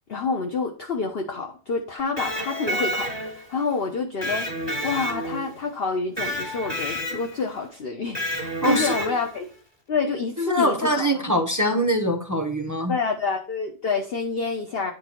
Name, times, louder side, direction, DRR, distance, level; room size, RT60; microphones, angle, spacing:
voice 1, 0.1-4.5 4.8-9.5 9.9-11.3 12.9-14.9, left 4 dB, 40° left, 1.0 m, -28 dB
Electric guitar, 2.0-3.5 4.2-5.6 6.2-7.4 8.1-9.4, equal, 15° left, 2.6 m, -30 dB
voice 2, 8.6-8.9 10.4-12.9, equal, 25° right, 0.3 m, -23 dB
9.5 x 4.5 x 4.4 m
omnidirectional pair, 1.8 m